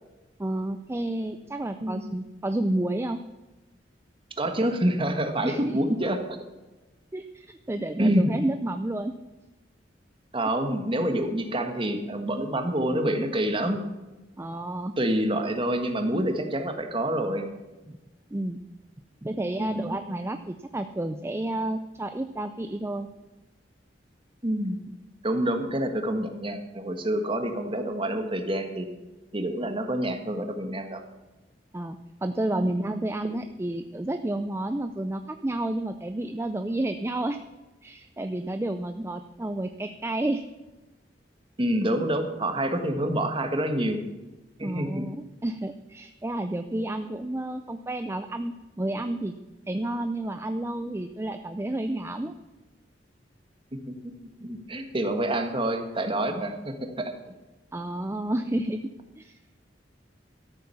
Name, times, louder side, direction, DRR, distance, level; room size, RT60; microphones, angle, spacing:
voice 1, 0.4-3.2 5.4-5.8 7.1-9.1 14.4-14.9 17.9-18.0 18.3-18.6 19.2-23.1 31.7-37.4 37.8-40.4 44.6-49.3 49.7-52.3 57.7-58.9 59.2-59.3, right 1 dB, 15° right, 8 dB, 0.5 m, -30 dB
voice 2, 4.4-6.2 8.0-8.3 10.3-13.8 15.0-17.5 19.6-20.0 24.4-24.8 25.2-28.9 29.3-31.0 32.6-32.7 41.6-44.0 44.6-45.0 53.9-54.1 54.4-57.1 58.5-58.7, right 1 dB, 30° right, 6 dB, 1.5 m, -27 dB
13.0 x 8.7 x 7.0 m, 1.1 s
head